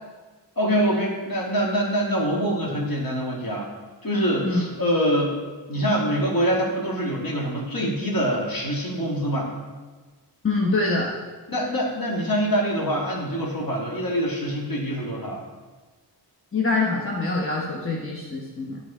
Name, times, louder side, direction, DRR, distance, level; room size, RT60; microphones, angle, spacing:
voice 1, 0.6-3.7 4.0-5.4 5.7-9.5 11.5-15.4, equal, 55° left, -3 dB, 2.2 m, -24 dB
voice 2, 10.4-11.1 16.5-18.8, left 3 dB, 30° left, -4 dB, 1.3 m, -24 dB
11.0 x 4.0 x 5.0 m, 1.4 s
wide cardioid pair, 80°, 42 cm